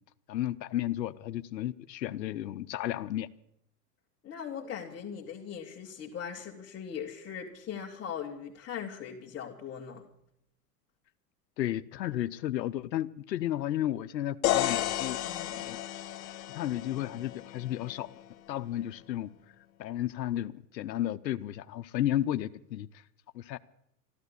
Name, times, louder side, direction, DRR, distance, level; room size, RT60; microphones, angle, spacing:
voice 1, 0.3-3.3 11.6-15.2 15.6-15.8 16.5-18.1 18.5-19.3 19.8-22.9 23.3-23.6, left 12 dB, 85° left, 13 dB, 0.8 m, -33 dB
voice 2, 4.2-10.0 15.2-15.7, left 8 dB, 20° left, -3 dB, 2.0 m, -40 dB
sound 1, 14.4-18.3, left 13 dB, 60° left, 1.9 m, -33 dB
14.0 x 12.0 x 8.2 m, 0.74 s
hypercardioid pair, 115°, 50 cm